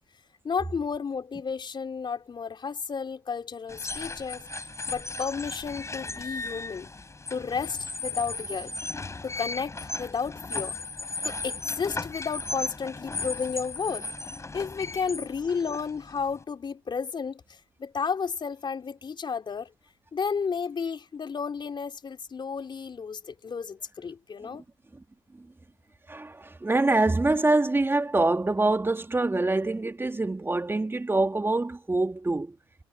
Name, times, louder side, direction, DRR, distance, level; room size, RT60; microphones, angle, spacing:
voice 1, 0.4-4.5 4.9-6.9 7.3-8.7 9.2-10.8 11.2-14.1 14.5-19.7 20.1-24.6, left 5 dB, 40° left, 3.7 m, -32 dB
sound 1, 3.7-16.4, left 3 dB, 25° left, 5.7 m, -36 dB
voice 2, 26.1-32.5, right 2 dB, 20° right, 2.7 m, -25 dB
hypercardioid pair, 50°, 12 cm